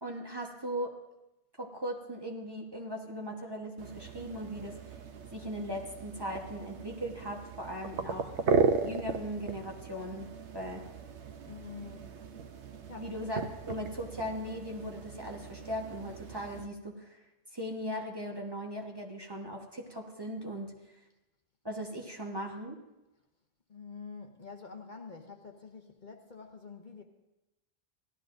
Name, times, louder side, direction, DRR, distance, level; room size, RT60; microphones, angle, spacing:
voice 1, 0.0-1.0 1.6-5.0 5.3-8.3 8.8-10.9 13.0-17.2 17.5-20.7 21.6-22.8, equal, 25° right, 0 dB, 1.1 m, -38 dB
sound 1, 3.8-16.7, right 4 dB, 80° right, 1.0 m, -36 dB
voice 2, 11.4-12.1 12.5-13.2 23.7-27.0, left 5 dB, 45° left, 3 dB, 1.0 m, -47 dB
17.0 x 12.5 x 2.6 m, 0.97 s
omnidirectional pair, 1.1 m